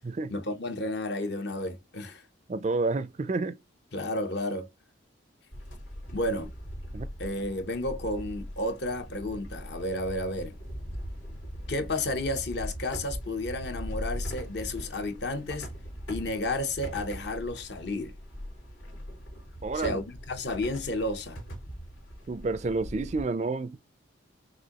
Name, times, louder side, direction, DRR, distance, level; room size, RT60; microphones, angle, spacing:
voice 1, 0.3-2.2 3.9-4.7 6.1-6.5 7.2-10.5 11.7-15.7 16.1-18.1 19.7-21.4, left 1 dB, 55° left, 0.8 m, -32 dB
voice 2, 2.5-3.6 6.9-7.1 19.6-20.0 22.3-23.8, right 3 dB, 35° right, 0.4 m, -29 dB
sound 1, 5.5-23.2, equal, 90° left, 2.5 m, -40 dB
6.1 x 2.6 x 2.9 m
head